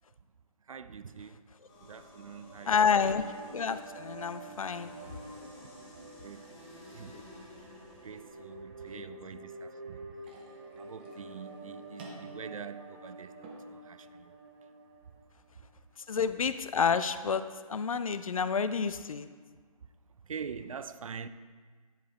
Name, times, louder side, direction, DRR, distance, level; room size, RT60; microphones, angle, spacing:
voice 1, 0.6-1.4 1.8-3.0 6.2-7.2 7.6-7.7 8.0-10.3 10.8-14.4 15.6-15.7 19.8-19.9 20.2-21.3, right 6 dB, 65° right, 0.4 m, -45 dB
sound 1, 1.6-8.5, left 1 dB, 15° left, 0.8 m, -53 dB
sound 2, 2.2-15.5, right 2 dB, 40° right, 0.9 m, -48 dB
voice 2, 2.7-4.9 16.1-19.3, left 6 dB, 65° left, 0.4 m, -29 dB
sound 3, 10.2-18.2, right 3 dB, 15° right, 0.6 m, -56 dB
10.0 x 4.4 x 3.5 m
figure-of-eight pair, 155°, 19 cm